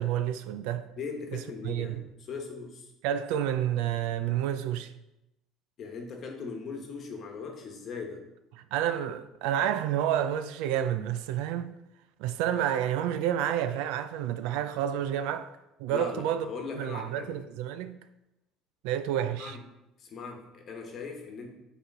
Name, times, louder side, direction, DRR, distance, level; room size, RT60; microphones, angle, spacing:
voice 1, 0.0-0.8 1.3-2.0 3.0-4.9 8.5-11.7 12.2-15.5 15.8-16.5 16.8-18.0 18.8-19.6, right 10 dB, 80° right, 0.5 m, -29 dB
voice 2, 1.0-2.9 5.8-8.3 15.9-17.4 19.4-19.6 20.0-21.5, left 5 dB, 35° left, 1.2 m, -39 dB
8.0 x 4.3 x 4.7 m
cardioid pair, 170°, 0 cm